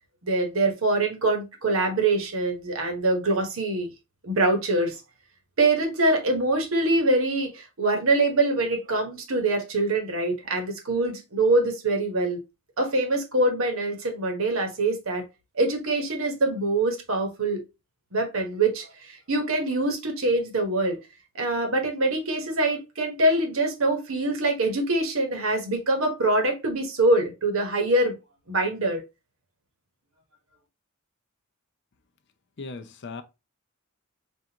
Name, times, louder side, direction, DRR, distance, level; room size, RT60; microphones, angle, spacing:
voice 1, 0.2-3.9 4.2-5.0 5.6-12.4 12.8-15.2 15.6-17.6 18.1-21.0 21.4-28.2 28.5-29.0, right 2 dB, 65° right, 1.1 m, -24 dB
voice 2, 32.6-33.2, left 4 dB, 55° left, 0.6 m, -37 dB
5.5 x 2.5 x 2.8 m
head